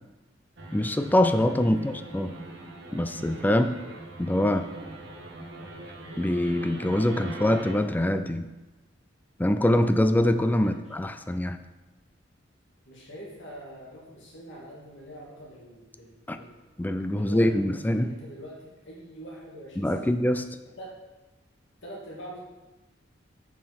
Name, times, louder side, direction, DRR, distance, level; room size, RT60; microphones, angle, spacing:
sound 1, 0.6-7.7, right 2 dB, 70° right, 1.3 m, -42 dB
voice 1, 0.7-2.3 2.9-3.7 4.2-4.7 6.2-8.5 9.4-11.6 16.3-16.4 16.8-18.1 19.8-20.4, left 1 dB, 10° left, 9 dB, 0.3 m, -24 dB
voice 2, 1.6-2.0 10.6-11.0 12.9-16.7 17.0-20.1 20.8-20.9 21.8-22.4, equal, 75° left, -4 dB, 2.2 m, -44 dB
7.5 x 5.9 x 4.2 m, 1.1 s
head